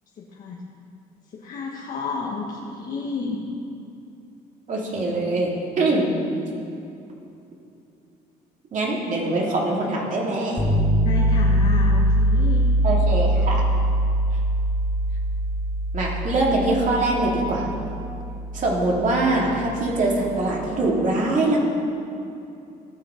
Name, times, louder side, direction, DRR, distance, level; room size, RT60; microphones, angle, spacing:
voice 1, 0.2-0.6 1.3-3.4 11.0-12.7, left 4 dB, 50° left, -2 dB, 1.3 m, -31 dB
voice 2, 4.7-6.1 8.7-10.6 12.8-13.6 15.9-17.7 18.5-21.6, right 2 dB, 50° right, -3 dB, 2.7 m, -23 dB
sound 1, 10.6-20.5, right 1 dB, 20° left, 1.9 m, -22 dB
17.5 x 6.1 x 5.1 m, 2.6 s
cardioid pair, 110°, 17 cm